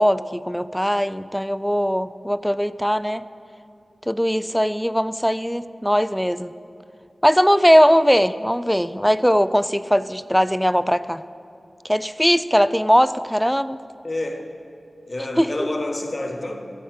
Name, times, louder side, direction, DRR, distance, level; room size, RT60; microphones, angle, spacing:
voice 1, 0.0-3.2 4.1-6.5 7.2-11.2 11.9-13.8 15.4-15.7, equal, ahead, 15 dB, 0.3 m, -20 dB
voice 2, 14.0-14.5 15.1-16.7, left 2 dB, 45° left, 3 dB, 1.1 m, -28 dB
13.0 x 4.4 x 7.9 m, 2.5 s
cardioid pair, 45°, 0 cm